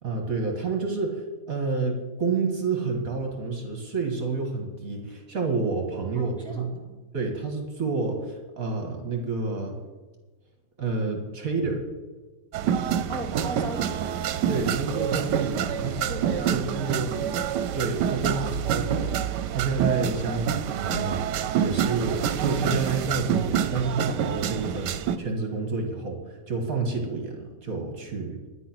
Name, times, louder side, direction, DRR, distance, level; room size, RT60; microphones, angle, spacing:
voice 1, 0.0-6.7 7.1-9.8 10.8-11.8 14.5-17.4 17.7-28.4, right 4 dB, 55° right, 2 dB, 2.0 m, -29 dB
voice 2, 6.2-7.0 12.8-14.2 15.9-17.2, right 1 dB, ahead, -2 dB, 2.4 m, -38 dB
sound 1, 12.5-25.2, right 8 dB, 80° right, 1.3 m, -27 dB
11.0 x 10.5 x 6.0 m, 1.2 s
omnidirectional pair, 1.8 m